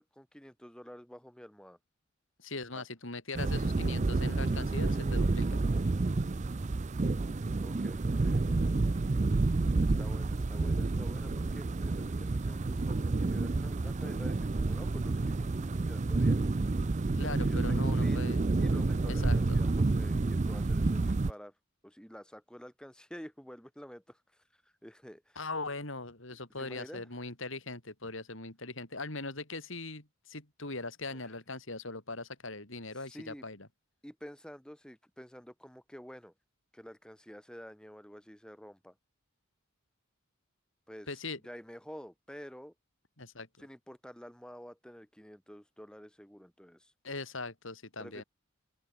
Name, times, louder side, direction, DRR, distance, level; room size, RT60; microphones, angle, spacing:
voice 1, 0.0-1.8 2.7-2.8 7.6-8.5 9.8-16.5 17.2-18.3 18.6-21.5 21.8-24.2 24.8-25.4 26.6-27.1 31.1-31.3 33.0-33.5 34.0-36.3 36.7-38.9 40.9-41.1 41.4-42.7 43.6-46.9 48.0-48.2, equal, 5° left, 4.8 m, -49 dB
voice 2, 2.4-5.6 17.2-18.4 19.1-19.6 25.4-33.6 41.1-41.4 43.2-43.5 47.0-48.2, left 3 dB, 65° left, 4.6 m, -40 dB
sound 1, 3.3-21.3, right 3 dB, 35° right, 0.5 m, -29 dB
open air
head